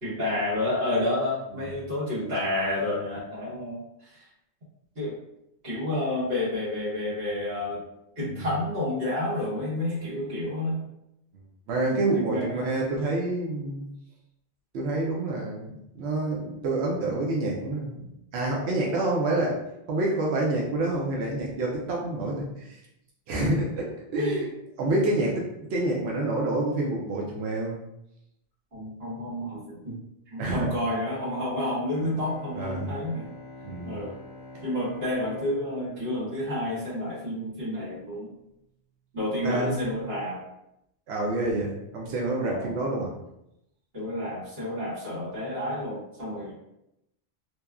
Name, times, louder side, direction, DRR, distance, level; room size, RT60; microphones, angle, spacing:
voice 1, 0.0-4.2 4.9-5.1 5.6-7.8 8.2-10.8 11.8-12.6 24.2-24.4 28.7-29.9 30.3-33.3 33.8-34.2 34.6-38.3 39.1-40.4 42.4-42.7 43.9-46.5, left 1 dB, 65° right, -11 dB, 1.5 m, -30 dB
voice 2, 11.7-13.8 14.7-19.6 19.9-22.8 23.3-24.5 24.8-27.8 30.4-30.7 32.5-33.0 33.6-34.0 39.4-40.0 41.1-43.1, right 2 dB, 80° right, -2 dB, 0.8 m, -28 dB
Bowed string instrument, 31.9-37.5, left 1 dB, 55° left, 0.9 m, -46 dB
2.9 x 2.2 x 2.3 m, 0.83 s
omnidirectional pair, 1.1 m